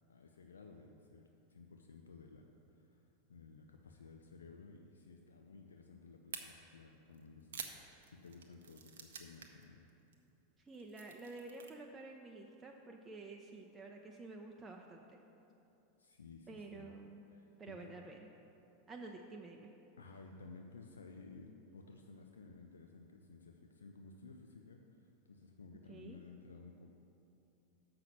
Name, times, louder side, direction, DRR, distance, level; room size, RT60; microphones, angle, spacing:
voice 1, 0.1-7.7 8.1-9.9 16.0-16.9 17.3-18.0 20.0-26.9, left 4 dB, 75° left, 3 dB, 0.5 m, -56 dB
sound 1, 6.3-6.4 7.1-9.6 9.9-10.1 10.6-11.7, right 7 dB, 65° right, 0.7 m, -48 dB
voice 2, 10.6-15.2 16.5-17.2 17.6-18.2 18.9-19.7 25.9-26.2, right 3 dB, 20° right, 1 dB, 0.6 m, -50 dB
6.7 x 5.8 x 7.3 m, 2.8 s
figure-of-eight pair, 85°, 0 cm